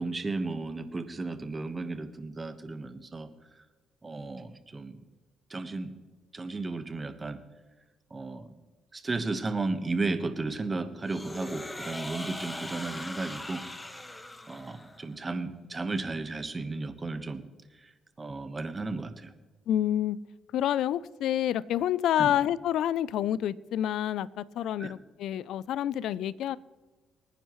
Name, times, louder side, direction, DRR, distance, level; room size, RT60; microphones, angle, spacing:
voice 1, 0.0-3.3 4.0-5.0 5.5-5.9 6.3-7.4 8.1-8.5 8.9-13.6 14.5-17.5 17.8-17.9 18.2-19.3 22.2-22.3 24.8-24.9, right 3 dB, 25° right, 9 dB, 1.2 m, -34 dB
sound 1, 11.1-15.1, left 1 dB, 15° left, 1.0 m, -40 dB
voice 2, 19.7-20.2 20.5-26.6, left 11 dB, 80° left, 19 dB, 0.4 m, -28 dB
24.5 x 10.0 x 3.1 m, 1.3 s
cardioid pair, 90°, 0 cm